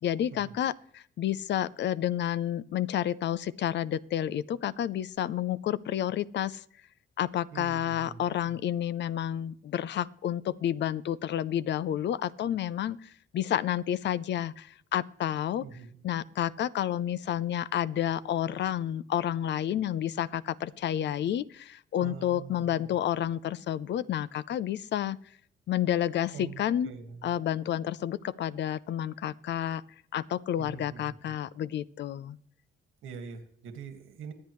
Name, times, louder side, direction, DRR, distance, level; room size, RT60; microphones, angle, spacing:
voice 1, 0.0-6.6 7.2-15.6 16.0-25.2 25.7-26.9 27.2-29.8 30.1-32.4, left 11 dB, 60° left, 17 dB, 0.6 m, -30 dB
voice 2, 7.5-8.6 15.6-16.0 22.0-23.0 26.3-27.3 30.6-31.3 33.0-34.3, right 6 dB, 85° right, 7 dB, 1.9 m, -44 dB
22.5 x 8.6 x 3.2 m, 0.63 s
cardioid pair, 90°, 20 cm